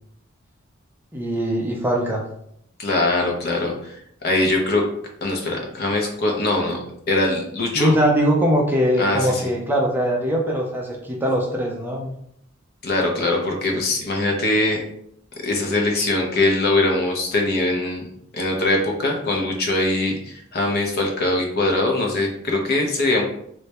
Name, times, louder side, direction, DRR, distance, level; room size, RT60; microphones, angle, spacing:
voice 1, 1.1-2.2 7.8-12.1, equal, 10° right, -1 dB, 0.3 m, -21 dB
voice 2, 2.8-4.0 4.2-4.9 5.2-6.8 7.1-8.0 9.0-9.5 12.8-14.8 15.4-18.1 18.3-23.2, left 2 dB, 50° left, 1 dB, 0.5 m, -22 dB
2.1 x 2.0 x 2.7 m, 0.71 s
head